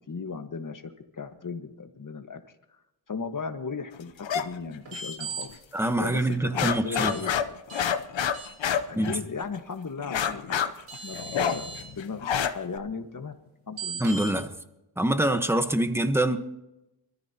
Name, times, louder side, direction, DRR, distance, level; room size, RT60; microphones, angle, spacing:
voice 1, 0.1-2.4 3.1-5.5 6.0-6.2 6.5-7.6 8.9-10.7 11.0-13.3 13.7-14.1, left 5 dB, 45° left, 7 dB, 1.6 m, -36 dB
sound 1, 4.2-4.4 4.7-5.5 5.9-6.0 6.3-9.6 10.0-12.8, left 8 dB, 75° left, 0.9 m, -28 dB
sound 2, 4.9-5.4 7.1-7.2 7.7-7.8 8.3-8.8 10.4-10.5 10.9-11.8 13.8-14.3, right 4 dB, 90° right, 4.6 m, -37 dB
voice 2, 5.7-7.1 9.0-9.1 14.0-14.5 15.0-16.4, right 1 dB, 5° right, 8 dB, 1.2 m, -25 dB
23.5 x 14.0 x 3.0 m, 0.93 s
cardioid pair, 80°, 45 cm